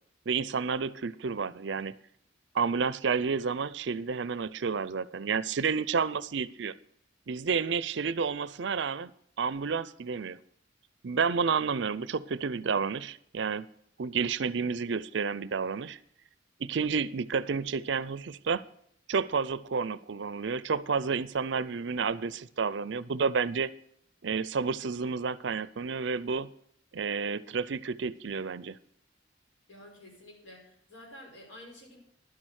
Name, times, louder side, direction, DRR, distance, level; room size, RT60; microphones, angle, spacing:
voice 1, 0.3-1.9 2.5-6.7 7.3-9.1 9.4-10.4 11.0-13.7 14.0-16.0 16.6-18.7 19.1-23.7 24.2-26.5 26.9-28.8, right 5 dB, 65° right, 18 dB, 0.5 m, -30 dB
voice 2, 29.7-32.0, left 1 dB, 75° left, -1 dB, 5.3 m, -50 dB
11.5 x 7.7 x 6.3 m, 0.69 s
head